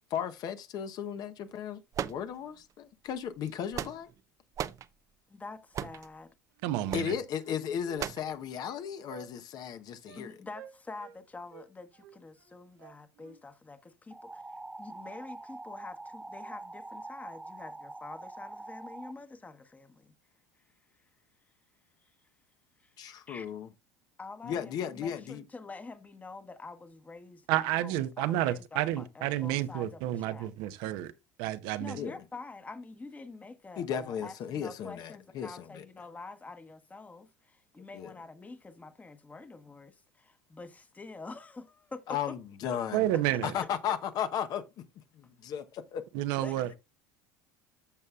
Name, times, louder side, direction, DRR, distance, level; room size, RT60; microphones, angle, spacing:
voice 1, 0.1-1.8 2.1-4.1 6.9-10.3 23.0-23.7 24.4-25.4 31.9-32.2 33.8-35.8 37.9-38.1 42.1-43.0 43.4-44.6 45.1-46.0, left 8 dB, 55° left, 1.0 m, -35 dB
sound 1, 1.9-2.7 3.4-4.2 4.6-4.9 5.7-6.1 6.9-7.1 8.0-8.3, right 9 dB, 40° right, 0.6 m, -36 dB
voice 2, 5.3-6.3 10.1-20.1 22.8-22.9 23.3-23.5 24.2-27.5 27.8-30.5 31.8-42.3 42.7-42.8 43.3-43.4 46.4-46.7, left 3 dB, 20° left, 1.2 m, -46 dB
voice 3, 6.6-7.1 27.5-31.1 31.4-32.0 42.9-43.5 46.1-46.8, right 14 dB, 70° right, 0.8 m, -30 dB
Wind instrument woodwind instrument, 6.6-6.7 7.0-8.8 9.1-9.3 9.6-9.7 10.1-10.2 10.5-11.2 11.5-13.4, right 11 dB, 85° right, 1.5 m, -52 dB
sound 2, 14.1-19.1, right 2 dB, 10° right, 0.9 m, -44 dB
14.0 x 5.4 x 2.4 m
supercardioid pair, 90°, 8 cm